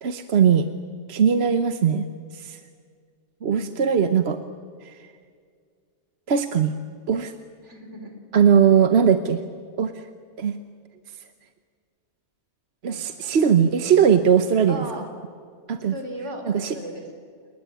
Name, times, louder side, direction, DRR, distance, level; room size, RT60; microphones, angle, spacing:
voice 1, 0.0-0.7 1.1-2.1 2.3-2.6 3.4-4.4 6.3-6.7 7.1-7.3 8.3-9.4 9.8-9.9 10.4-10.6 12.8-14.8 15.7-15.9 16.5-16.7, right 7 dB, 65° right, 9 dB, 1.2 m, -19 dB
voice 2, 3.5-4.0 7.6-8.2 12.9-13.4 14.7-15.1 15.8-17.1, right 1 dB, 85° right, 5 dB, 4.3 m, -37 dB
29.5 x 19.5 x 9.1 m, 2.1 s
omnidirectional pair, 1.2 m